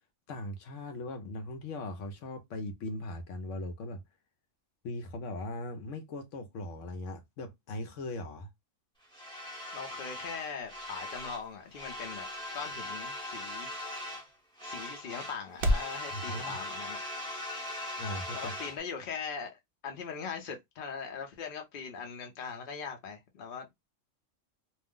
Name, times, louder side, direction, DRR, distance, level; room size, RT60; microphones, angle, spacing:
voice 1, 0.3-4.0 4.8-8.5 16.1-16.6 18.0-18.5, left 2 dB, 80° left, 1.0 m, -39 dB
sound 1, 9.1-11.5 11.7-14.3 14.6-18.8, left 1 dB, 5° left, 0.7 m, -40 dB
voice 2, 9.7-12.3 12.5-13.7 14.6-17.0 18.3-23.7, left 6 dB, 50° left, 0.8 m, -40 dB
sound 2, 9.7-16.0, equal, 60° right, 0.6 m, -38 dB
2.6 x 2.0 x 3.5 m
omnidirectional pair, 1.3 m